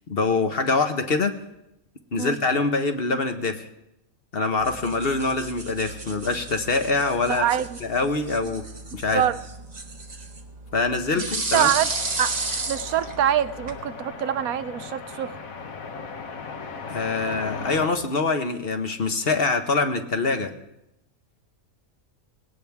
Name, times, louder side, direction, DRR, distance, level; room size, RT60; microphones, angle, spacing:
voice 1, 0.1-1.3 2.1-3.7 4.3-7.5 7.8-8.6 8.9-9.2 10.7-11.7 16.9-20.5, left 3 dB, 45° left, 7 dB, 1.2 m, -24 dB
sound 1, 4.6-13.8, right 3 dB, 30° right, 1.3 m, -34 dB
voice 2, 7.3-7.8 9.1-9.4 11.1-11.3 11.5-11.9 12.2-12.4 12.7-15.4, right 10 dB, 80° right, 14 dB, 1.2 m, -24 dB
sound 2, 11.7-17.9, left 4 dB, 70° left, 1.6 m, -37 dB
20.0 x 17.5 x 3.5 m, 0.86 s
omnidirectional pair, 1.5 m